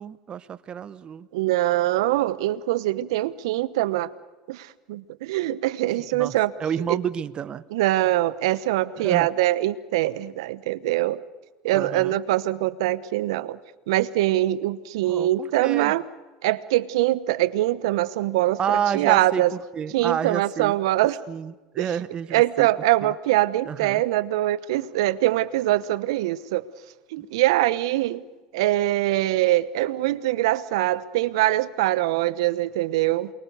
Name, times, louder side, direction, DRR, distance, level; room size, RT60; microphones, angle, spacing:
voice 1, 0.0-1.3 6.1-6.3 6.6-7.6 9.0-9.3 11.7-12.2 15.1-16.0 18.6-20.8 21.3-22.7 23.0-23.1 23.7-24.0 27.2-27.3, right 8 dB, 35° right, 15 dB, 1.1 m, -30 dB
voice 2, 1.3-4.1 4.5-6.5 6.9-7.0 7.7-11.2 11.6-13.6 13.9-16.0 16.4-19.5 19.9-21.2 21.8-21.9 22.3-26.7 27.1-28.2 28.5-33.3, right 15 dB, 75° right, 16 dB, 1.0 m, -23 dB
28.5 x 23.0 x 6.9 m, 1.2 s
hypercardioid pair, 85°, 3 cm